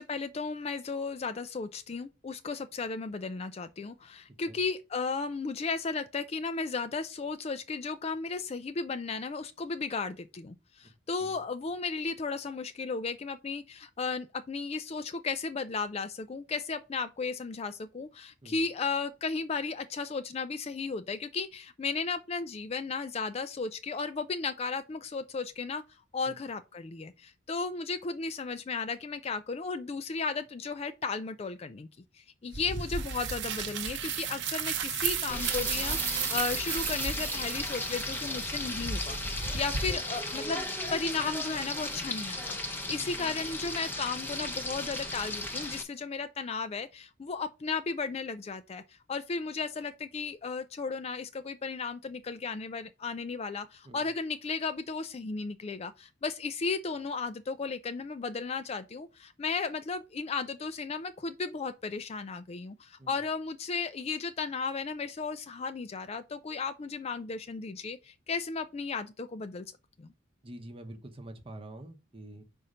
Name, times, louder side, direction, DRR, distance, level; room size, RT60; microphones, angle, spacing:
voice 1, 0.0-25.8 26.1-31.9 32.1-69.7 70.0-70.1, left 4 dB, 30° left, 0.4 m, -35 dB
sound 1, 32.5-39.9, right 6 dB, 60° right, 0.8 m, -34 dB
Frying (food), 35.3-45.8, left 2 dB, 10° left, 0.7 m, -35 dB
voice 2, 42.9-43.2 53.8-54.1 63.0-63.2 70.4-72.4, right 1 dB, 25° right, 0.9 m, -46 dB
5.4 x 4.2 x 5.0 m
head